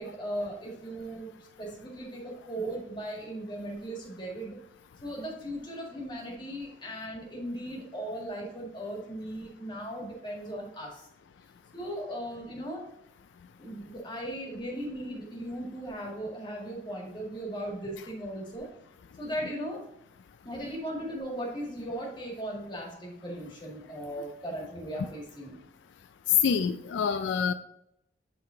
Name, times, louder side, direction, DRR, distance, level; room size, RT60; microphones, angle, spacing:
voice 1, 0.0-4.6 5.0-11.1 11.7-12.9 13.6-18.7 19.2-19.8 20.4-25.6, right 1 dB, 25° left, -1 dB, 1.8 m, -37 dB
voice 2, 26.3-27.5, left 7 dB, 80° left, 9 dB, 0.3 m, -25 dB
8.1 x 3.7 x 3.8 m, 0.80 s
head